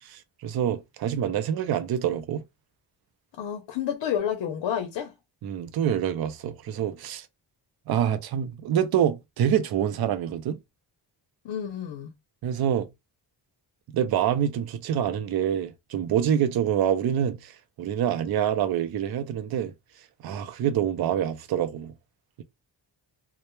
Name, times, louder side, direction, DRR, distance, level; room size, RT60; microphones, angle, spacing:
voice 1, 0.0-2.4 5.4-7.3 7.9-10.6 12.4-12.9 13.9-19.7 20.2-21.9, right 9 dB, 55° right, 0.5 m, -26 dB
voice 2, 3.4-5.1 11.4-12.1, left 9 dB, 70° left, 0.6 m, -30 dB
2.1 x 2.0 x 3.0 m
wide cardioid pair, 110°, 44 cm